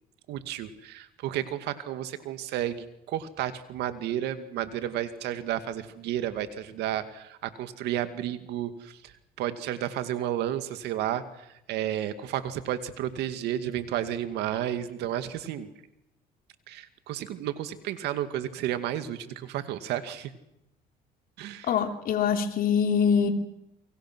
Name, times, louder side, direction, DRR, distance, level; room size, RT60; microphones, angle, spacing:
voice 1, 0.3-9.1 9.4-15.7 16.7-20.3 21.4-21.7, right 11 dB, 85° right, 10 dB, 2.3 m, -32 dB
voice 2, 21.6-23.3, left 7 dB, 60° left, 5 dB, 3.0 m, -24 dB
29.5 x 24.0 x 6.3 m, 0.83 s
cardioid pair, 110°, 17 cm